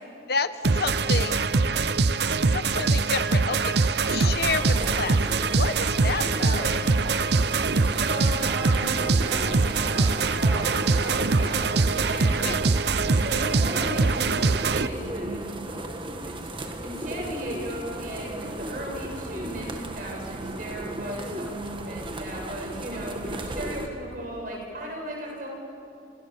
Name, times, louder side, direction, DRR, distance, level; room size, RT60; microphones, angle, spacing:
voice 1, 0.3-1.4 2.5-6.7 12.4-12.6, left 4 dB, 55° left, 12 dB, 1.0 m, -30 dB
sound 1, 0.6-14.9, right 4 dB, 60° right, 0.7 m, -23 dB
sound 2, 4.2-23.9, right 1 dB, 25° right, 1.6 m, -36 dB
voice 2, 6.4-6.7 8.0-12.5 13.1-25.5, right 1 dB, 45° right, -1 dB, 7.7 m, -36 dB
29.0 x 27.5 x 7.2 m, 2.7 s
head